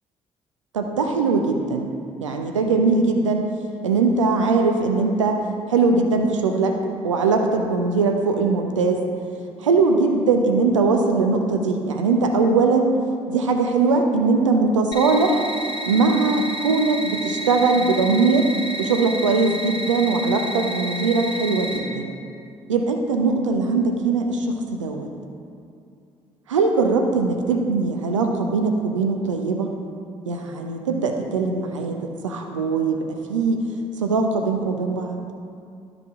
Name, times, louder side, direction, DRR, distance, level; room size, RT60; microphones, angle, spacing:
voice 1, 0.7-1.9 2.2-3.5 3.8-5.4 5.7-6.8 7.0-9.0 9.6-12.9 13.3-15.4 15.9-18.5 18.8-22.1 22.7-25.1 26.5-29.8 30.3-33.6 34.0-35.2, right 4 dB, 80° right, 4 dB, 0.6 m, -21 dB
sound 1, 14.9-21.8, right 1 dB, 30° left, 2.0 m, -31 dB
12.0 x 5.0 x 3.6 m, 2.4 s
figure-of-eight pair, 40°, 16 cm